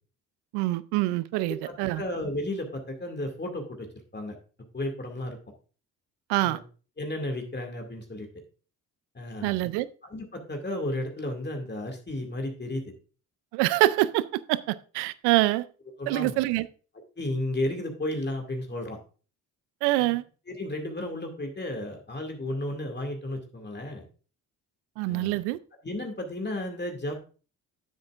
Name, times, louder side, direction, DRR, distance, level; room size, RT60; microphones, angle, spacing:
voice 1, 0.5-2.0 6.3-6.6 9.4-9.9 13.5-15.7 16.1-16.7 19.8-20.2 25.0-25.6, right 17 dB, 85° right, 0.6 m, -25 dB
voice 2, 1.3-3.9 4.1-4.4 4.7-5.4 6.4-6.6 7.0-8.3 9.1-9.6 10.0-12.8 16.0-16.4 17.2-19.0 20.0-20.1 20.5-24.0 25.1-25.4 25.8-27.3, left 1 dB, 25° left, 2.3 m, -33 dB
10.0 x 7.8 x 2.5 m
supercardioid pair, 55°, 39 cm